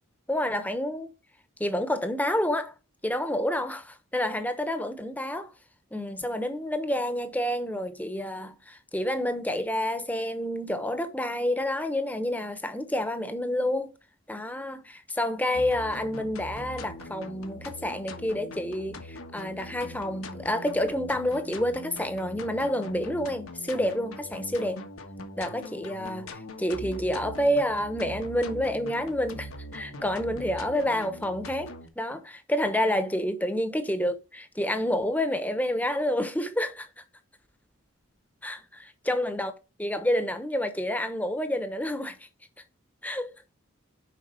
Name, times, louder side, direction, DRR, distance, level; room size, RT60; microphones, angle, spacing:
voice 1, 0.3-1.1 1.6-2.7 3.0-5.5 5.9-13.9 14.3-24.8 25.4-37.0 38.4-39.5 39.8-42.3 43.0-43.3, left 1 dB, 10° left, 0.9 m, -29 dB
sound 1, 15.5-31.9, left 1 dB, 85° left, 1.4 m, -42 dB
7.4 x 5.3 x 5.0 m
head